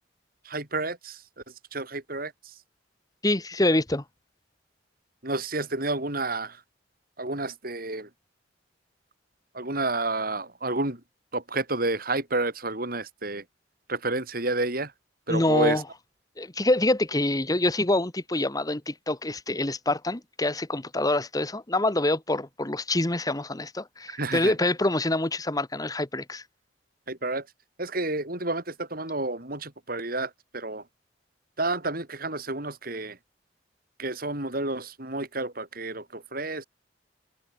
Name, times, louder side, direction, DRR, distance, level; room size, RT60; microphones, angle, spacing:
voice 1, 0.4-1.2 1.7-2.5 5.2-6.6 7.2-8.1 9.5-11.0 11.3-13.4 13.9-14.9 15.3-15.8 24.1-24.5 27.1-27.5 27.8-30.8 31.6-33.2 34.0-36.7, right 2 dB, 50° right, 5.5 m, -30 dB
voice 2, 3.2-4.0 15.3-15.8 16.4-26.4, left 2 dB, 20° left, 1.4 m, -26 dB
head